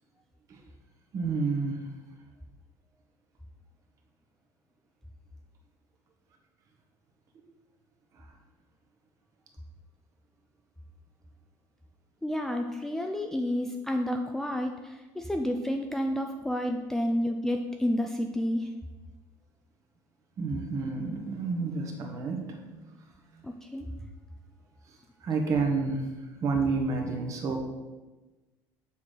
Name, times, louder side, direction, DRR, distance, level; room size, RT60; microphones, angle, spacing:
voice 1, 1.1-1.9 8.1-8.3 20.4-23.0 25.2-26.1 26.4-27.6, right 4 dB, 40° right, 2 dB, 1.4 m, -30 dB
voice 2, 12.2-18.7 23.4-23.9, left 1 dB, 5° left, 4 dB, 0.4 m, -30 dB
7.3 x 3.9 x 6.4 m, 1.2 s
cardioid pair, 145°, 8 cm